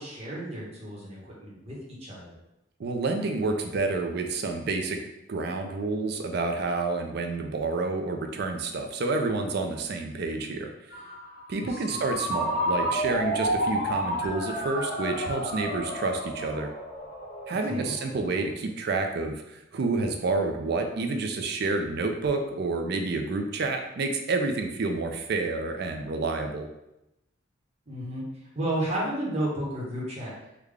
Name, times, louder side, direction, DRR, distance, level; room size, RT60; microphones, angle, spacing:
voice 1, 0.0-2.3 11.6-12.0 17.6-17.9 27.9-28.2 28.5-30.3, right 1 dB, 30° right, -6 dB, 0.9 m, -32 dB
voice 2, 2.8-5.0 5.3-10.7 11.5-16.7 17.5-26.7, right 3 dB, 55° right, 5 dB, 0.4 m, -29 dB
Ringtone, 10.9-18.4, equal, 50° left, 0.6 m, -31 dB
3.6 x 2.2 x 3.3 m, 0.88 s
head